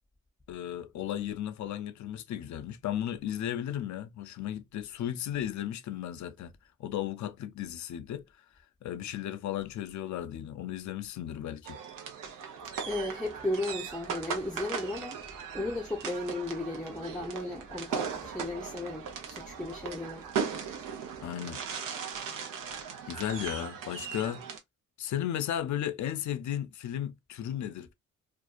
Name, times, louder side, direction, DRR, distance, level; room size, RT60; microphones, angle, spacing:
voice 1, 0.5-6.5 6.8-8.2 8.8-11.8 21.2-21.6 23.1-24.4 25.0-27.9, left 11 dB, 60° left, 0.5 m, -35 dB
sound 1, 11.6-24.6, right 6 dB, 75° right, 0.7 m, -38 dB
voice 2, 12.9-15.2 15.5-20.3, left 1 dB, ahead, 0.6 m, -35 dB
2.5 x 2.2 x 2.3 m
supercardioid pair, 50°, 33 cm